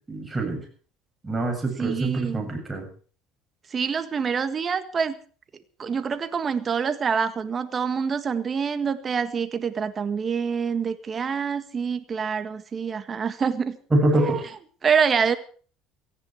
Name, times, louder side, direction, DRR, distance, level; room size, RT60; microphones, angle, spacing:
voice 1, 0.1-0.6 1.2-2.9 13.9-14.4, right 1 dB, 20° right, 2 dB, 7.7 m, -25 dB
voice 2, 1.8-2.4 3.7-5.1 5.8-13.8 14.1-14.4 14.8-15.4, right 6 dB, 35° right, 11 dB, 1.7 m, -26 dB
18.0 x 15.0 x 4.8 m, 0.42 s
supercardioid pair, 100°, 0 cm